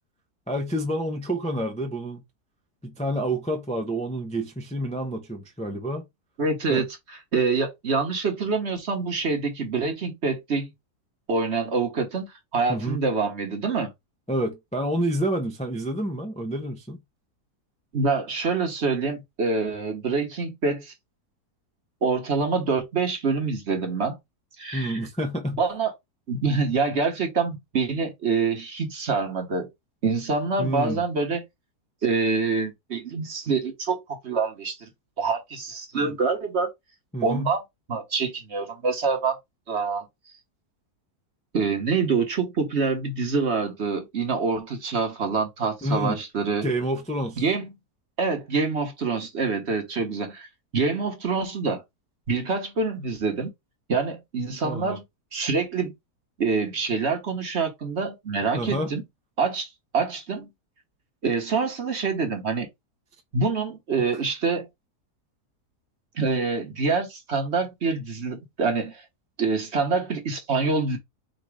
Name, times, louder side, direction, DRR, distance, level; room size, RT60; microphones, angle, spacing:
voice 1, 0.5-2.2 2.8-6.0 6.7-6.8 12.7-13.0 14.3-17.0 24.7-25.6 30.6-31.0 36.0-36.1 37.1-37.5 45.8-46.2 46.6-47.4 54.6-55.0 58.5-58.9 64.1-64.2, right 1 dB, 5° left, 0.5 m, -28 dB
voice 2, 6.4-6.9 7.3-10.7 11.3-13.9 17.9-20.9 22.0-24.2 24.6-25.0 25.6-25.9 26.3-29.7 30.0-31.4 32.0-34.9 35.2-36.7 37.2-37.6 37.9-39.4 39.7-40.0 41.5-46.7 47.4-47.7 48.2-50.5 50.7-51.8 52.3-53.5 53.9-55.0 55.3-55.9 56.4-59.0 59.4-60.5 61.2-62.7 63.3-64.7 66.2-69.0 69.4-71.0, right 4 dB, 45° right, 1.3 m, -26 dB
3.9 x 2.7 x 4.8 m
omnidirectional pair, 1.7 m